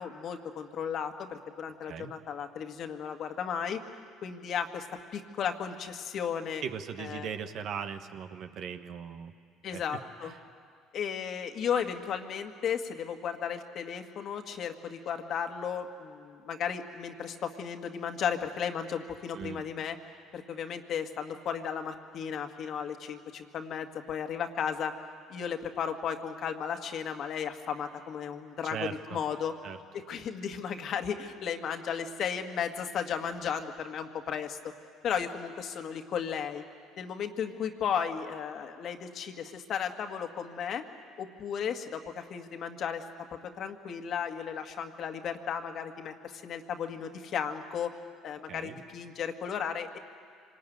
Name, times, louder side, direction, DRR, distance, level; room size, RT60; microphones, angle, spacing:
voice 1, 0.0-3.8 4.2-4.9 5.1-6.6 7.0-7.3 9.6-10.3 10.9-20.0 20.3-24.9 25.3-28.8 29.1-29.5 29.9-34.6 35.0-36.6 37.0-40.8 41.2-43.0 43.4-47.9 48.2-50.0, left 7 dB, 55° left, 5 dB, 1.8 m, -34 dB
voice 2, 6.6-9.3 9.7-9.8 10.2-10.4 19.3-19.6 28.6-29.2 29.6-29.8 48.5-48.8, right 7 dB, 60° right, 8 dB, 1.4 m, -39 dB
25.5 x 20.0 x 9.3 m, 2.2 s
hypercardioid pair, 65°, 0 cm